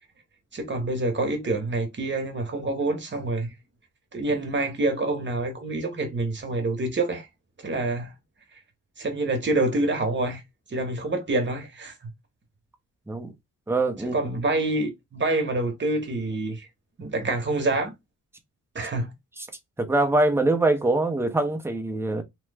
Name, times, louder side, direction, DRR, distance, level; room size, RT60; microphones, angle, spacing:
voice 1, 0.5-3.5 4.1-7.3 7.6-8.1 9.0-10.4 10.7-11.9 14.0-16.7 17.0-17.9 18.7-19.1, right 2 dB, 35° right, 1.0 m, -27 dB
voice 2, 13.7-14.2 19.8-22.2, right 2 dB, 5° right, 0.6 m, -23 dB
3.0 x 2.1 x 3.3 m
wide cardioid pair, 140°, 33 cm